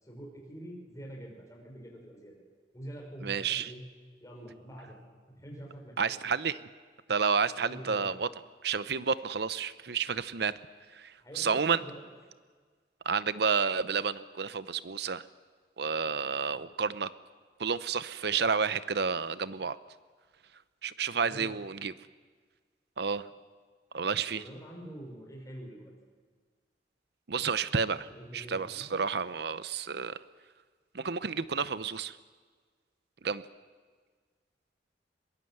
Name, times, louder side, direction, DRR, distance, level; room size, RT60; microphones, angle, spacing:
voice 1, 0.0-2.4 2.7-3.8 4.2-5.0 5.3-6.2 7.6-8.2 11.2-12.0 21.2-21.5 24.3-25.9 28.0-29.0, right 1 dB, 20° left, 0 dB, 5.8 m, -46 dB
voice 2, 3.2-3.7 6.0-6.6 7.1-8.3 8.6-10.5 10.9-11.8 13.0-15.2 15.8-17.1 17.6-19.8 20.8-21.9 23.0-23.3 23.9-24.4 27.3-30.2 30.9-32.2 33.2-33.4, right 5 dB, 65° right, 15 dB, 0.8 m, -30 dB
22.5 x 20.5 x 7.9 m, 1.5 s
head